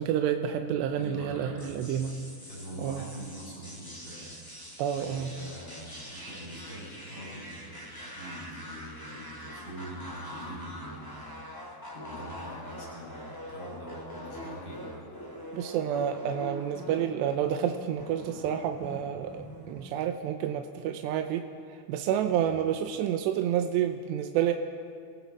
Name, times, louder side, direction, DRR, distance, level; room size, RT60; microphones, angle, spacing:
voice 1, 0.0-2.1 2.8-3.0 4.8-5.3 15.5-21.4 21.9-24.5, right 9 dB, 85° right, 6 dB, 3.0 m, -29 dB
voice 2, 0.9-1.9 2.5-4.3 4.9-11.4 11.9-14.9 22.3-22.4, right 1 dB, 25° left, -6 dB, 7.8 m, -43 dB
sound 1, 1.6-20.0, equal, 5° left, 1.6 m, -44 dB
30.0 x 18.5 x 4.8 m, 2.3 s
omnidirectional pair, 5.0 m